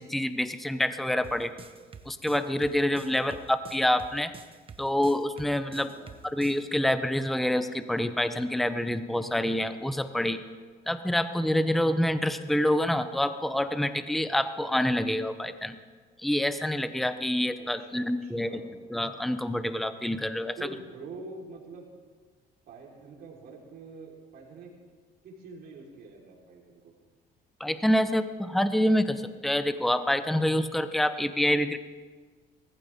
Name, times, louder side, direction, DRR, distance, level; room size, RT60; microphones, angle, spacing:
voice 1, 0.0-1.5 2.1-4.3 4.8-5.9 6.2-10.4 10.9-15.8 16.2-18.6 18.9-20.6 27.6-31.8, left 1 dB, ahead, 11 dB, 0.7 m, -27 dB
sound 1, 1.2-6.6, right 6 dB, 30° right, 1.1 m, -47 dB
voice 2, 5.7-6.1 17.6-18.7 20.5-21.9 22.7-24.8 25.2-26.9, right 3 dB, 65° right, -2 dB, 4.1 m, -46 dB
20.5 x 14.5 x 3.6 m, 1.5 s
cardioid pair, 110°, 17 cm